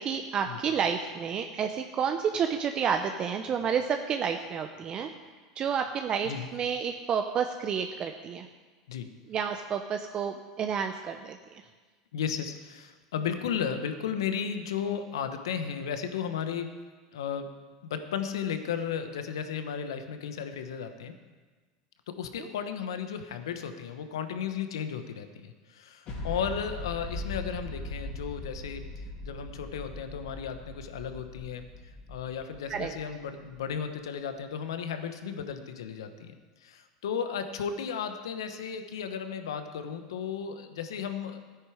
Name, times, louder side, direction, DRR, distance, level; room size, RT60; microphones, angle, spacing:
voice 1, 0.0-5.1 5.6-8.5 9.3-11.4 32.7-32.9, right 7 dB, 40° right, 6 dB, 0.7 m, -30 dB
voice 2, 12.1-16.7 17.1-17.5 17.8-21.1 22.1-28.8 29.2-31.7 32.1-36.3 36.6-41.4, left 7 dB, 85° left, 8 dB, 1.1 m, -34 dB
sound 1, 26.1-33.6, left 2 dB, 55° left, 3.6 m, -40 dB
13.0 x 9.4 x 5.0 m, 1.4 s
hypercardioid pair, 100°, 2 cm